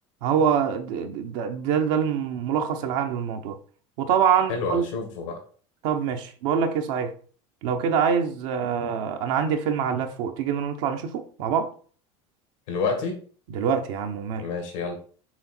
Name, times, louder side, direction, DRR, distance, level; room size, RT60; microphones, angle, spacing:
voice 1, 0.2-3.6 4.0-4.9 5.8-7.1 7.6-11.7 13.5-14.5, right 7 dB, 75° right, 0.9 m, -25 dB
voice 2, 4.5-5.4 12.7-13.2 14.4-14.9, left 4 dB, 85° left, 2.1 m, -28 dB
6.2 x 3.9 x 4.4 m
supercardioid pair, 115°, 16 cm